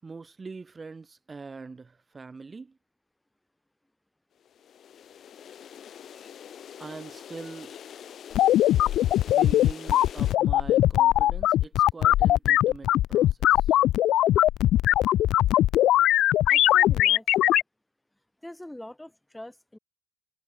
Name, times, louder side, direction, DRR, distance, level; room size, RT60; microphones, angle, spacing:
voice 1, 0.0-2.8 6.8-7.7 9.3-13.8, right 4 dB, 30° right, 6.5 m, -43 dB
sound 1, 4.4-10.3, left 9 dB, 60° left, 4.4 m, -45 dB
sound 2, 8.3-17.6, left 13 dB, 80° left, 0.7 m, -21 dB
voice 2, 16.5-17.6 18.4-19.8, left 1 dB, 10° left, 7.0 m, -44 dB
cardioid pair, 90°, 0 cm